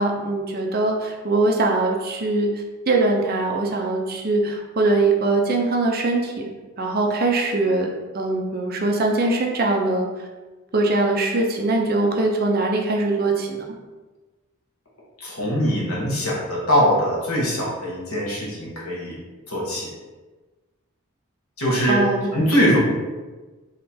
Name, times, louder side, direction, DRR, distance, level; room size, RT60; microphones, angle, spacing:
voice 1, 0.0-6.4 6.8-10.3 10.7-13.6 21.9-22.3, right 2 dB, 45° right, 1 dB, 0.6 m, -22 dB
voice 2, 15.2-19.2 19.5-19.9 21.6-22.0 22.3-22.8, equal, 85° left, -4 dB, 1.4 m, -22 dB
3.7 x 3.2 x 4.3 m, 1.3 s
head